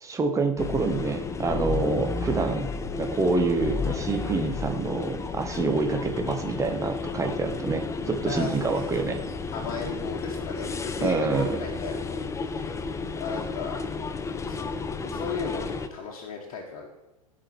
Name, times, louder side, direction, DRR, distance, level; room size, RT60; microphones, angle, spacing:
voice 1, 0.0-2.7 3.0-9.2 11.0-11.6, right 3 dB, 15° right, 5 dB, 1.3 m, -27 dB
sound 1, 0.6-15.9, left 4 dB, 15° left, 0.7 m, -32 dB
voice 2, 8.3-9.2 9.5-12.8 13.2-13.8 14.4-16.9, left 5 dB, 50° left, -2 dB, 1.7 m, -36 dB
15.0 x 5.0 x 4.5 m, 1.0 s
hypercardioid pair, 90°, 18 cm